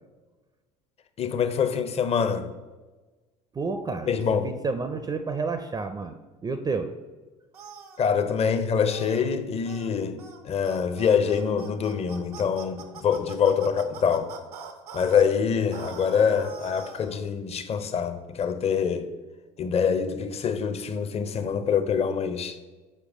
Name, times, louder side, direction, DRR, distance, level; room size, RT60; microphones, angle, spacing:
voice 1, 1.2-2.5 4.1-4.5 8.0-14.3 14.9-19.1 19.6-22.6, left 6 dB, 35° left, 0.6 m, -25 dB
voice 2, 3.5-6.2 6.4-6.9, right 4 dB, 20° right, 0.4 m, -30 dB
sound 1, 7.5-8.1 8.9-9.2 9.7-9.9 10.2-10.4 10.6-15.2 15.7-17.2, right 7 dB, 85° right, 0.7 m, -43 dB
6.6 x 4.7 x 3.6 m
hypercardioid pair, 65°, 19 cm